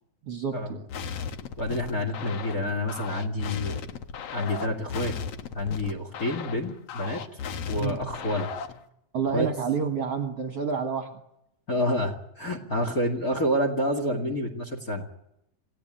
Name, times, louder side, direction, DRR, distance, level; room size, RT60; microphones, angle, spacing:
voice 1, 0.2-0.9 7.8-8.0 9.1-11.2, right 6 dB, 50° right, 4 dB, 2.0 m, -29 dB
sound 1, 0.9-8.8, left 6 dB, 65° left, 1.6 m, -36 dB
voice 2, 1.6-3.8 4.3-5.1 5.5-7.4 7.7-8.5 9.3-9.5 11.7-15.1, left 1 dB, 30° left, 6 dB, 2.0 m, -28 dB
27.5 x 17.0 x 9.0 m, 0.84 s
omnidirectional pair, 4.3 m